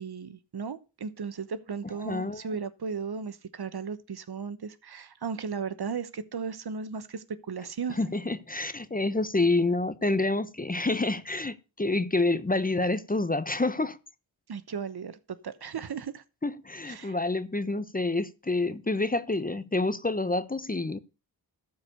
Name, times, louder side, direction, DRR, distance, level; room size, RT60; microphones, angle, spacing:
voice 1, 0.0-8.0 14.5-15.2 15.4-16.2 16.8-17.2, right 5 dB, 55° right, 1.0 m, -36 dB
voice 2, 2.0-2.4 7.9-14.0 16.4-21.0, left 2 dB, 20° left, 0.9 m, -28 dB
13.0 x 4.7 x 6.6 m
cardioid pair, 45°, 45 cm